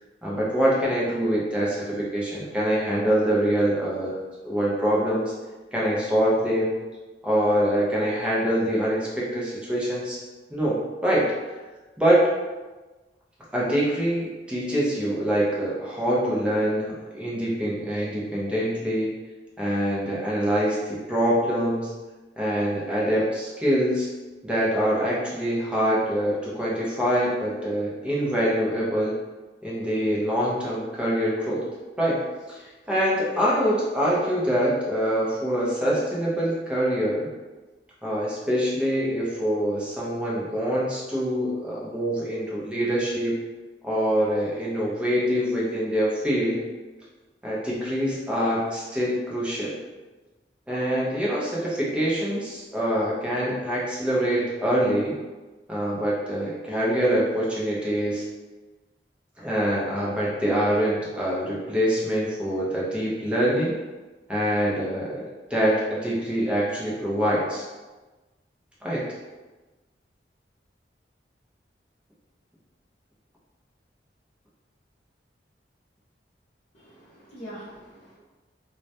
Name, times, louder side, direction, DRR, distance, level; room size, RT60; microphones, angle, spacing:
voice 1, 0.2-4.2 4.4-5.3 5.7-6.7 7.2-10.2 10.5-11.3 12.0-12.2 13.5-19.1 19.6-21.9 22.4-24.1 24.4-29.1 29.6-31.7 32.0-32.2 32.5-37.3 38.0-43.3 43.8-46.6 47.4-49.7 50.7-55.2 55.7-58.2 59.4-63.7 64.3-67.6 68.8-69.1, equal, 5° right, -6 dB, 0.5 m, -25 dB
voice 2, 76.7-78.1, equal, 40° left, -13 dB, 0.7 m, -43 dB
2.2 x 2.0 x 2.7 m, 1.2 s
head